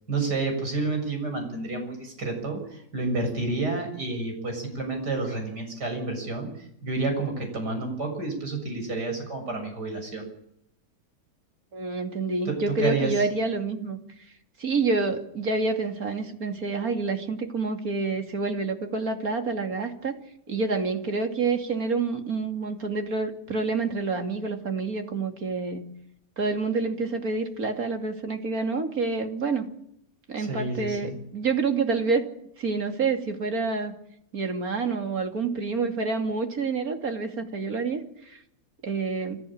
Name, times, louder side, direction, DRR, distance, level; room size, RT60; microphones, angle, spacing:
voice 1, 0.1-6.5 6.8-10.3 12.5-13.2 30.4-31.1, right 3 dB, 80° right, 3 dB, 7.6 m, -29 dB
voice 2, 11.7-14.0 14.6-20.2 20.5-25.8 26.4-29.7 30.3-32.2 32.6-33.9 34.3-38.4 38.8-39.4, right 4 dB, 60° right, 5 dB, 3.1 m, -28 dB
26.5 x 15.0 x 8.7 m, 0.75 s
omnidirectional pair, 1.7 m